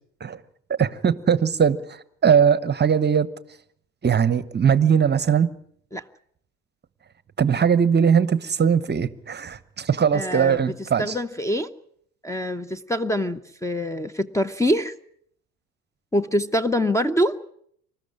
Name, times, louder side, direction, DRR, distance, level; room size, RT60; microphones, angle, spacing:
voice 1, 0.8-3.3 4.0-5.5 7.4-11.1, right 7 dB, 25° right, 1.1 m, -20 dB
voice 2, 10.1-11.7 12.2-14.9 16.1-17.4, equal, 5° left, 0.9 m, -25 dB
26.5 x 14.0 x 10.0 m
figure-of-eight pair, 60°, 44 cm